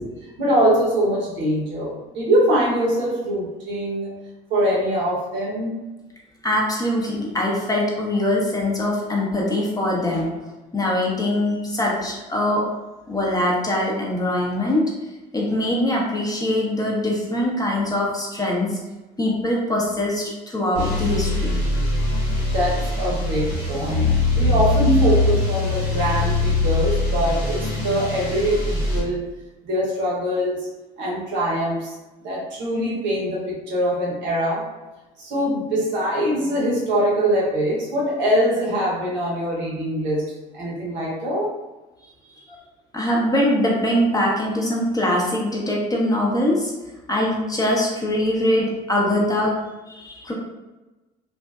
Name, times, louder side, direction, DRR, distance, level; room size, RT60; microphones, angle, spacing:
voice 1, 0.4-4.2 4.5-5.8 22.3-29.3 29.6-30.7 31.0-34.7 35.2-41.5, equal, 65° right, -4 dB, 0.9 m, -23 dB
voice 2, 6.4-10.3 10.7-12.6 13.1-14.8 15.3-18.8 19.2-21.6 42.3-42.6 42.9-46.7 47.1-49.6 49.9-50.3, left 1 dB, 20° left, -3 dB, 0.7 m, -22 dB
sound 1, 20.7-29.0, left 2 dB, 80° left, 1.1 m, -22 dB
2.5 x 2.1 x 2.3 m, 1.1 s
hypercardioid pair, 60°, 21 cm